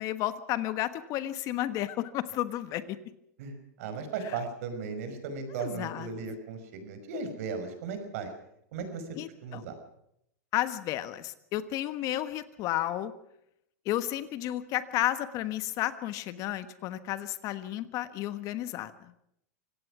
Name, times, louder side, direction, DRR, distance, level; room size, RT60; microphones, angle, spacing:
voice 1, 0.0-3.0 4.2-4.4 5.5-6.1 9.2-9.7 10.5-13.1 13.8-19.1, left 13 dB, 40° left, 13 dB, 1.3 m, -32 dB
voice 2, 3.4-8.3 8.7-9.0 9.4-9.8, right 5 dB, 60° right, 8 dB, 5.5 m, -36 dB
25.0 x 17.5 x 6.1 m, 0.75 s
hypercardioid pair, 130°, 9 cm